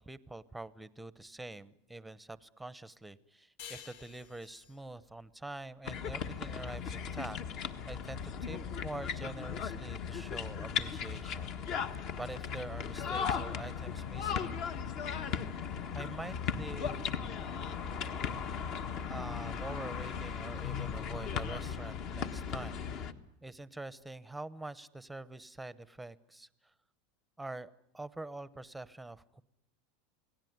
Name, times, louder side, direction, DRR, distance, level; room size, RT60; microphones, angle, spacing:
voice 1, 0.0-11.5 12.2-14.6 15.9-17.2 19.1-23.1 23.4-26.5 27.4-29.4, right 2 dB, 5° right, 17 dB, 0.9 m, -45 dB
sound 1, 3.6-6.8, left 8 dB, 70° left, 1.4 m, -53 dB
sound 2, 5.8-23.1, left 7 dB, 45° left, 1.5 m, -37 dB
27.5 x 18.0 x 9.5 m, 0.80 s
supercardioid pair, 145°, 0 cm